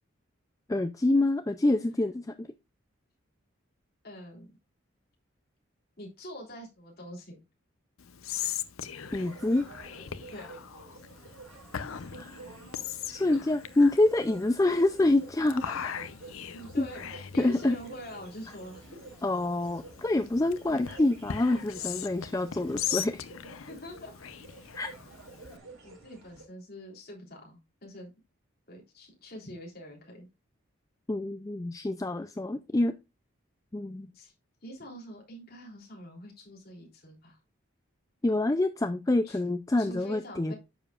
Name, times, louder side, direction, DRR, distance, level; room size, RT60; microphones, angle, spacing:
voice 1, 0.7-2.5 9.1-9.7 12.2-12.4 13.1-15.9 16.8-16.9 17.4-17.8 19.2-23.2 24.7-24.9 31.1-32.9 33.7-34.1 38.2-40.5, left 2 dB, 15° left, 9 dB, 0.3 m, -26 dB
voice 2, 4.0-4.5 6.0-7.4 10.3-10.5 16.3-19.0 20.7-20.8 23.7-24.3 25.4-28.1 28.7-30.3 34.1-34.3 34.6-37.4 39.2-39.4 39.8-40.5, equal, 45° left, -1 dB, 3.3 m, -45 dB
Whispering, 8.0-25.6, left 9 dB, 80° left, 0.6 m, -40 dB
sound 1, 9.0-26.4, right 3 dB, 75° right, 4.4 m, -50 dB
10.0 x 7.1 x 2.4 m, 0.24 s
head